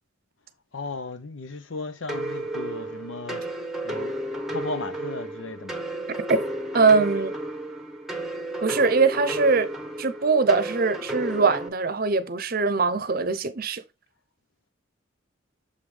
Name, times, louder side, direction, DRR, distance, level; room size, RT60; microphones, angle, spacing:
voice 1, 0.7-3.5 3.8-5.8, left 3 dB, 80° left, 0.9 m, -36 dB
sound 1, 2.1-11.7, right 1 dB, ahead, 1.1 m, -32 dB
voice 2, 6.7-7.3 8.6-9.7 10.0-13.8, right 4 dB, 50° right, 0.7 m, -22 dB
6.8 x 5.2 x 3.3 m
head